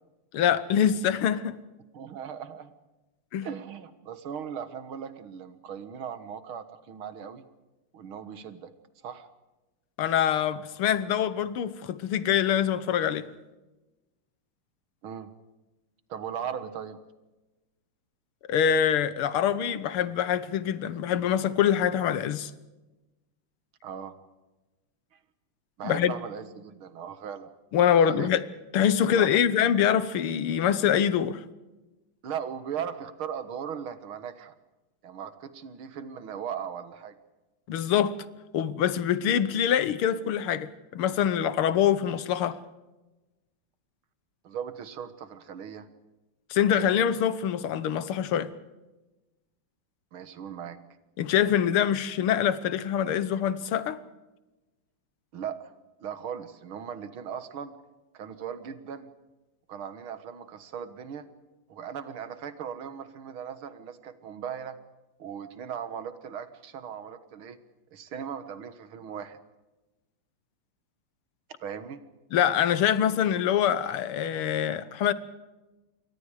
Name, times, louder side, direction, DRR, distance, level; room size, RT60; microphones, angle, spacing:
voice 1, 0.3-1.6 3.3-3.5 10.0-13.3 18.5-22.5 25.8-26.1 27.7-28.4 28.7-31.4 37.7-38.2 38.5-42.6 46.5-48.5 51.2-54.0 72.3-75.1, left 9 dB, 80° left, 1.9 m, -24 dB
voice 2, 1.9-2.7 3.4-7.4 7.9-8.7 9.0-9.3 15.0-15.3 16.1-17.0 23.8-24.2 25.8-27.5 28.1-28.3 29.1-29.3 32.2-34.5 35.0-37.2 44.4-45.9 50.1-50.8 55.3-55.7 56.0-57.7 58.1-59.1 59.7-61.3 61.7-64.8 65.2-67.6 67.9-69.4 71.6-72.0, right 8 dB, 75° right, 2.3 m, -38 dB
28.0 x 23.0 x 4.9 m
omnidirectional pair, 2.4 m